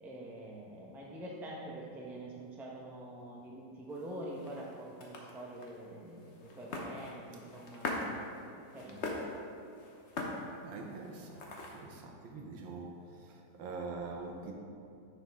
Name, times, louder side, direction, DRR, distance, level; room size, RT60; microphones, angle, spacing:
voice 1, 0.0-8.2 8.5-9.1, right 1 dB, ahead, -3 dB, 0.4 m, -45 dB
sound 1, 3.9-12.0, left 2 dB, 50° left, 0.9 m, -43 dB
voice 2, 5.8-6.6 10.6-14.5, right 3 dB, 85° right, 1 dB, 1.7 m, -45 dB
9.9 x 5.4 x 3.6 m, 2.5 s
omnidirectional pair, 2.1 m